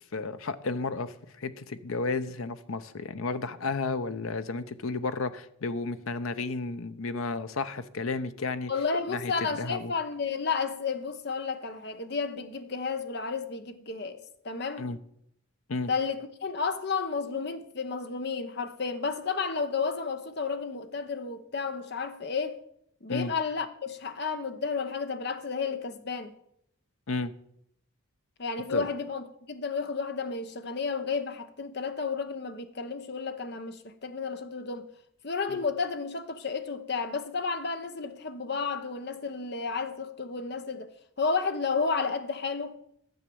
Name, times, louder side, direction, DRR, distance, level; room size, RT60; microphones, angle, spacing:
voice 1, 0.1-8.7 9.1-9.3 9.6-9.9 14.8-15.0 15.7-15.9 23.1-23.3 27.1-27.3 28.7-28.9 35.5-35.6, left 3 dB, 80° left, 0.7 m, -32 dB
voice 2, 8.7-14.2 14.4-14.9 15.9-22.6 23.0-26.3 28.4-34.9 35.2-40.9 41.2-42.8, left 5 dB, 50° left, 0.9 m, -32 dB
10.5 x 7.4 x 6.9 m
head